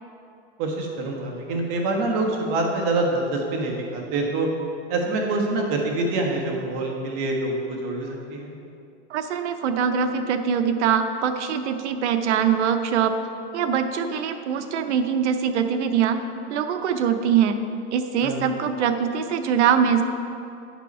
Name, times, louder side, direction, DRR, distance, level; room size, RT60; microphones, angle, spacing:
voice 1, 0.6-4.5 4.9-8.5 18.2-18.4, right 2 dB, 50° right, 0 dB, 1.6 m, -26 dB
voice 2, 9.1-13.2 13.5-16.2 16.5-17.6 17.9-20.0, right 7 dB, 90° right, 8 dB, 0.8 m, -23 dB
8.3 x 5.6 x 5.4 m, 2.5 s
supercardioid pair, 140°, 33 cm